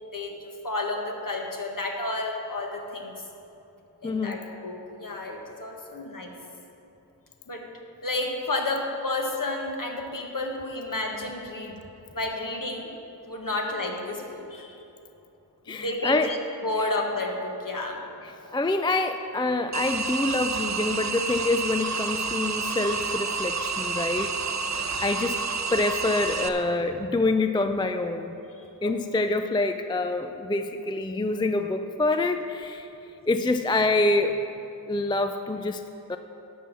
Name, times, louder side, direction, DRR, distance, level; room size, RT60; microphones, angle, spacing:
voice 1, 0.1-3.1 4.0-6.3 7.5-7.7 8.0-11.8 12.1-12.9 13.3-14.8 15.7-16.4 16.6-18.0 24.6-25.0 28.8-29.3, left 2 dB, 50° left, 1 dB, 1.4 m, -31 dB
voice 2, 4.0-4.4 15.7-16.3 18.2-24.3 25.0-25.4 25.7-28.4 28.8-32.9 33.3-34.4 34.9-35.8 36.1-36.2, left 2 dB, 10° left, 8 dB, 0.3 m, -26 dB
sound 1, 19.7-26.5, right 5 dB, 40° right, 0.7 m, -29 dB
11.0 x 5.4 x 7.3 m, 2.9 s
wide cardioid pair, 55°, 42 cm